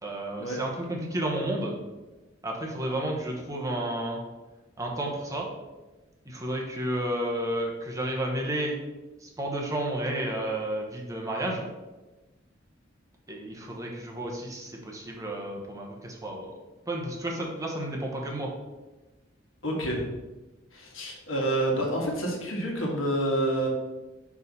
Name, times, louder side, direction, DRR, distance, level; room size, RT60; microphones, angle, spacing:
voice 1, 0.0-1.8 2.4-4.2 4.8-5.5 6.3-8.8 9.2-11.6 13.3-16.5 16.9-18.5, right 1 dB, 15° right, -1 dB, 1.0 m, -31 dB
voice 2, 19.6-20.1 20.7-23.7, right 1 dB, 80° left, -1 dB, 1.5 m, -28 dB
5.6 x 4.8 x 4.1 m, 1.1 s
head